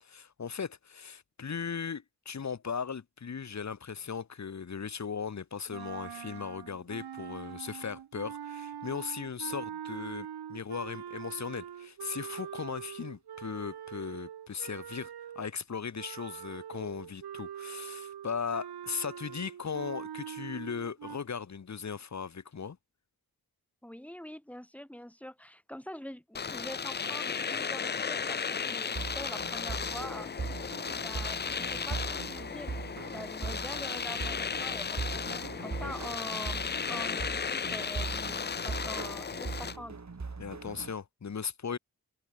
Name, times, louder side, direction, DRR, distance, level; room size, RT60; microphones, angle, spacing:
voice 1, 0.0-22.8 35.8-36.0 40.4-41.8, left 6 dB, 45° left, 1.1 m, -38 dB
sound 1, 5.7-15.5 15.9-21.2, right 9 dB, 80° right, 1.1 m, -43 dB
voice 2, 23.8-30.6 31.0-32.7 33.1-40.0, equal, 5° left, 4.7 m, -44 dB
Domestic sounds home sounds, 26.3-39.8, left 6 dB, 30° left, 0.5 m, -35 dB
sound 2, 29.0-40.9, right 4 dB, 45° right, 3.7 m, -40 dB
cardioid pair, 50°, 38 cm